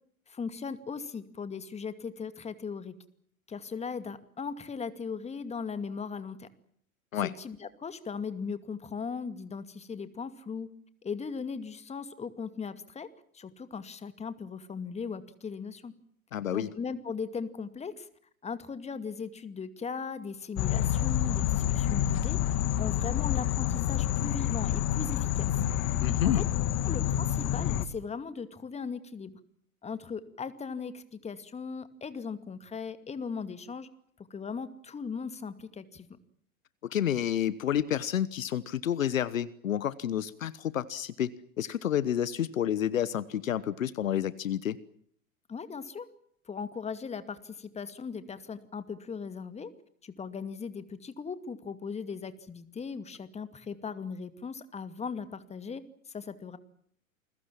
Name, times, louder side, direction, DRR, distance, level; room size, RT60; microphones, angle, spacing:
voice 1, 0.3-3.0 3.5-6.5 7.1-10.7 11.0-15.9 16.5-18.1 18.4-22.4 22.8-25.6 26.2-26.4 26.9-29.4 29.8-33.9 34.2-36.1 45.5-46.1 46.5-49.7 50.0-55.8 56.1-56.6, left 5 dB, 15° left, 12 dB, 2.3 m, -38 dB
voice 2, 16.3-16.7 26.0-26.4 36.8-41.3 41.6-44.8, left 10 dB, 65° left, 18 dB, 1.3 m, -29 dB
sound 1, 20.6-27.9, left 11 dB, 35° left, 1.9 m, -28 dB
29.0 x 22.0 x 7.4 m, 0.64 s
figure-of-eight pair, 90°, 42 cm